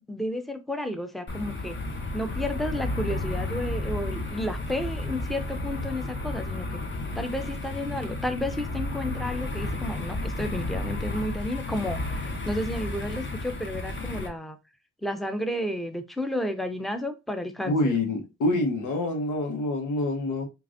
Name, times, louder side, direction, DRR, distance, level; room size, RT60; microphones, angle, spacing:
voice 1, 0.1-1.8 2.1-6.7 7.2-14.6 15.0-17.9, left 1 dB, ahead, 0.6 m, -32 dB
sound 1, 1.3-14.3, left 2 dB, 40° left, 1.1 m, -32 dB
voice 2, 17.6-20.4, left 2 dB, 80° left, 1.2 m, -26 dB
4.6 x 2.6 x 2.6 m
cardioid pair, 70°, 30 cm